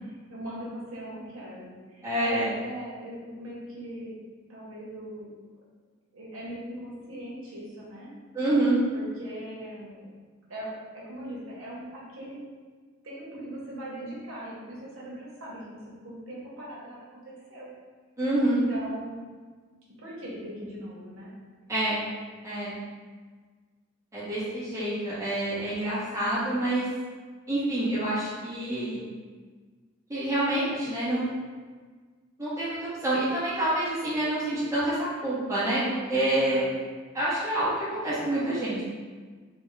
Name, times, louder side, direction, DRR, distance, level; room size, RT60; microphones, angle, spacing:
voice 1, 0.0-4.2 4.5-5.3 6.1-8.2 8.9-10.1 10.5-12.4 13.0-17.7 18.5-19.3 20.0-21.3 36.3-36.7, right 1 dB, 85° right, -6 dB, 0.9 m, -40 dB
voice 2, 2.0-2.5 8.3-8.8 18.2-18.6 21.7-22.0 22.4-22.7 24.1-26.9 27.5-29.1 30.1-31.2 32.4-36.6 37.1-38.8, right 1 dB, 15° right, -10 dB, 1.1 m, -27 dB
3.4 x 2.3 x 3.2 m, 1.5 s
head